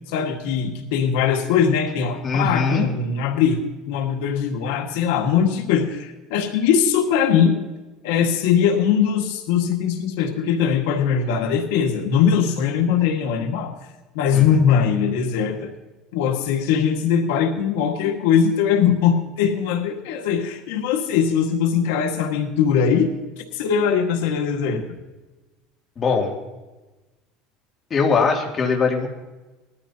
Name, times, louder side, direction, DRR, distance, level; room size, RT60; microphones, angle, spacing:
voice 1, 0.1-7.6 8.0-13.7 14.1-15.7 16.1-23.1 23.5-24.8, left 7 dB, 90° left, 2 dB, 1.6 m, -21 dB
voice 2, 2.2-2.9 14.3-14.5 26.0-26.3 27.9-29.1, left 5 dB, 30° left, 0 dB, 2.5 m, -21 dB
20.0 x 13.5 x 2.8 m, 1.1 s
cardioid pair, 140°, 0 cm